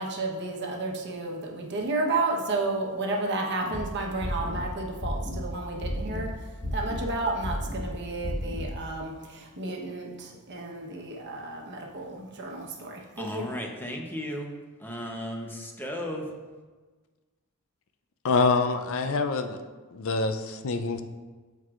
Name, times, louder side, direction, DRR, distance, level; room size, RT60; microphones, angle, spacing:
voice 1, 0.0-6.3 6.7-13.5, right 2 dB, 55° right, 0 dB, 1.1 m, -32 dB
sound 1, 3.6-3.8 4.2-4.6 5.0-5.4 5.8-6.2 6.6-7.1 7.4-7.9 8.2-8.7, left 1 dB, 25° left, 1.5 m, -33 dB
voice 2, 13.2-14.5 14.8-16.3, equal, 10° left, 1 dB, 0.8 m, -35 dB
voice 3, 18.2-19.6 19.9-21.0, left 4 dB, 65° left, 8 dB, 0.5 m, -25 dB
13.5 x 4.6 x 2.5 m, 1.4 s
head